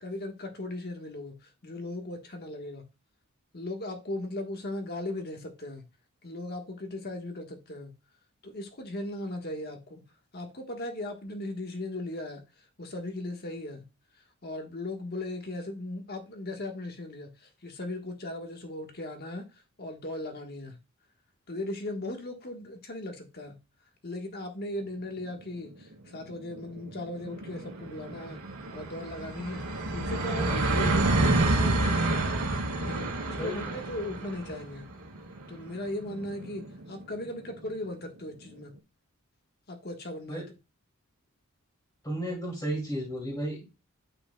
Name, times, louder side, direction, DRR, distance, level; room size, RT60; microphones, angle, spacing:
voice 1, 0.0-2.8 3.5-5.8 6.2-7.9 8.4-10.0 10.3-12.4 12.8-13.9 14.4-19.5 19.8-20.8 21.5-23.6 24.0-28.4 28.7-31.9 32.8-34.9 35.5-38.8 39.7-40.6, left 1 dB, 45° left, 1.4 m, -38 dB
sound 1, 25.4-25.5 25.8-25.9 26.1-37.6, right 2 dB, 80° right, 1.7 m, -29 dB
voice 2, 42.0-43.7, right 1 dB, 15° left, 2.3 m, -33 dB
9.1 x 5.6 x 2.2 m
head